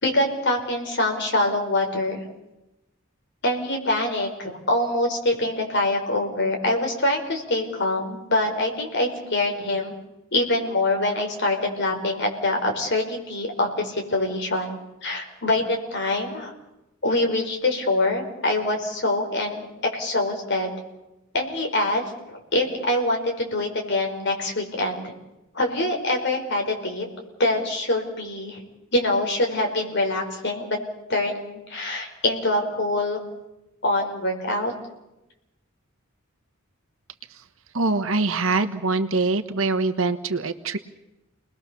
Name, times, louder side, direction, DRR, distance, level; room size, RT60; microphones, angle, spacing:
voice 1, 0.0-2.2 3.4-9.9 10.3-16.5 17.0-19.7 19.9-20.7 21.3-22.0 22.3-25.1 25.5-27.1 27.4-28.6 28.9-30.8 31.1-33.2 33.8-34.7, left 2 dB, 55° left, 2 dB, 5.0 m, -24 dB
voice 2, 37.7-40.8, right 3 dB, 70° right, 9 dB, 1.2 m, -23 dB
30.0 x 20.5 x 6.9 m, 0.94 s
head